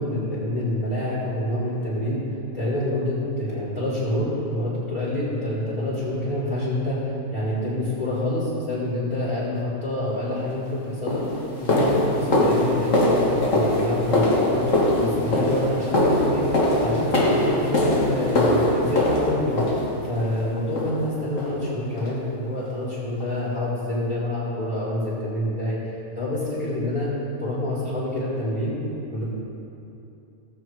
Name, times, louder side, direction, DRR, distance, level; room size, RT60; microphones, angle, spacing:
voice 1, 0.0-2.2 2.5-14.7 15.0-16.5 16.8-19.6 20.0-25.8 26.1-27.1 27.4-28.8 29.1-29.2, left 1 dB, 20° left, -11 dB, 3.5 m, -27 dB
sound 1, 10.4-10.5 11.1-20.3 20.8-21.1 21.4-21.6 22.0-22.2 22.6-22.7 23.2-23.3, left 1 dB, 65° left, 1.9 m, -22 dB
17.0 x 7.6 x 4.7 m, 2.9 s
omnidirectional pair, 1.5 m